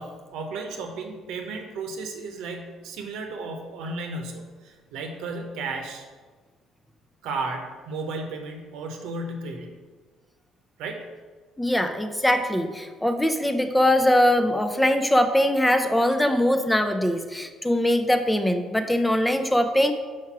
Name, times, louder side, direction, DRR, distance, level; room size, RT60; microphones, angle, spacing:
voice 1, 0.0-6.1 7.2-9.8 10.8-11.1, right 3 dB, 85° right, 3 dB, 0.9 m, -34 dB
voice 2, 11.6-19.9, left 1 dB, 5° left, 8 dB, 0.5 m, -22 dB
4.7 x 4.3 x 6.0 m, 1.4 s
cardioid pair, 120°, 0 cm